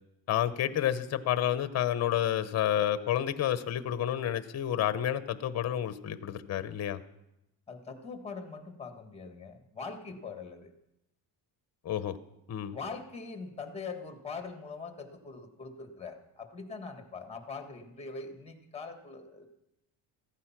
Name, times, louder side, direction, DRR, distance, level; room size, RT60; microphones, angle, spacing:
voice 1, 0.3-7.0 11.8-12.2 12.5-12.8, left 11 dB, 35° left, 13 dB, 0.8 m, -30 dB
voice 2, 7.7-10.7 12.7-19.5, left 4 dB, 15° left, 6 dB, 1.7 m, -42 dB
15.0 x 14.5 x 5.9 m, 0.87 s
cardioid pair, 160°, 46 cm